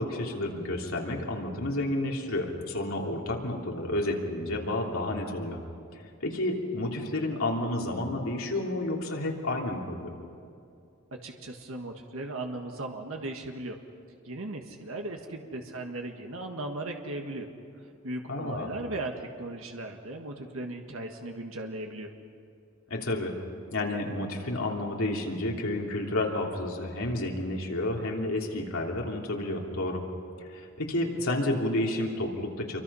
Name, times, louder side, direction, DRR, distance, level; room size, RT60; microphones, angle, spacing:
voice 1, 0.0-5.6 6.2-10.1 18.3-18.7 22.9-23.4 23.7-30.0 30.4-32.8, left 1 dB, 85° left, -1 dB, 3.2 m, -30 dB
voice 2, 11.1-13.8 14.2-17.5 18.0-22.1, right 2 dB, 80° right, 3 dB, 1.7 m, -37 dB
27.5 x 24.0 x 5.6 m, 2.4 s
head